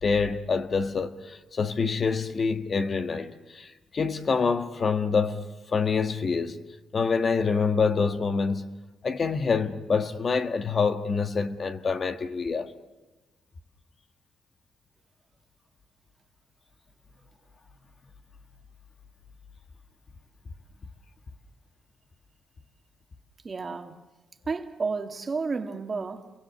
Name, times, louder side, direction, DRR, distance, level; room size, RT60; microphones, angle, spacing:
voice 1, 0.0-5.5 5.7-6.6 6.9-8.6 9.0-12.7, left 5 dB, 40° left, 1.5 m, -26 dB
voice 2, 23.4-23.9 24.5-26.3, right 4 dB, 35° right, 2.0 m, -31 dB
29.5 x 23.5 x 7.2 m
cardioid pair, 105°, 0 cm